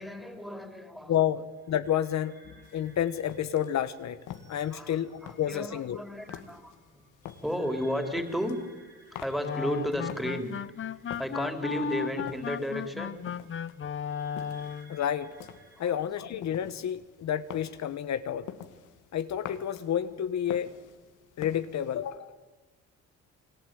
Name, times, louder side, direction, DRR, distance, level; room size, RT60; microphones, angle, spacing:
voice 1, 0.0-1.4 4.7-7.0 7.4-8.6 9.1-10.5 11.2-13.2 15.8-15.9 16.3-16.4, equal, ahead, 6 dB, 4.0 m, -34 dB
voice 2, 1.1-1.4 1.7-4.2 4.5-6.0 14.9-15.4 15.8-18.5 19.1-20.7 21.4-22.3, left 10 dB, 65° left, 11 dB, 1.2 m, -30 dB
sound 1, 1.5-16.0, right 2 dB, 35° right, 6.4 m, -60 dB
sound 2, 2.6-22.2, left 10 dB, 90° left, 2.1 m, -48 dB
sound 3, 9.4-15.0, left 7 dB, 40° left, 0.8 m, -35 dB
30.0 x 21.5 x 9.2 m, 1.2 s
cardioid pair, 90°, 30 cm